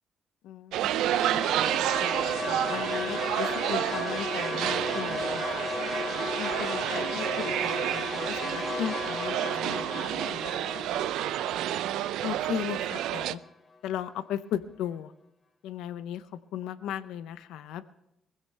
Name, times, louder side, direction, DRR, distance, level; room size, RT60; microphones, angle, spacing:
voice 1, 0.4-1.5 2.4-5.7 6.4-10.6 12.2-13.4 13.8-15.1 15.6-16.3 16.5-17.8, left 10 dB, 90° left, 13 dB, 0.6 m, -37 dB
sound 1, 0.7-13.3, right 12 dB, 90° right, 0.4 m, -30 dB
sound 2, 1.0-13.3, left 3 dB, 40° left, 3.5 m, -35 dB
20.5 x 16.0 x 3.3 m, 0.86 s
cardioid pair, 90°, 0 cm